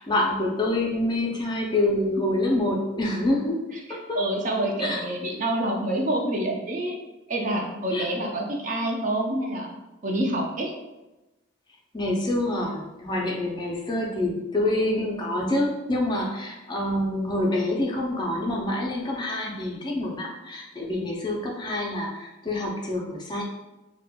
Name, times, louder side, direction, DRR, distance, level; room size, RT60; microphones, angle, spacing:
voice 1, 0.0-3.6 4.1-4.2 4.8-5.1 7.9-8.1 11.9-23.4, left 1 dB, 20° left, -2 dB, 0.4 m, -26 dB
voice 2, 3.9-7.0 7.3-9.7 10.0-10.7, right 1 dB, 40° right, 0 dB, 0.4 m, -27 dB
4.1 x 2.1 x 2.2 m, 1.1 s
head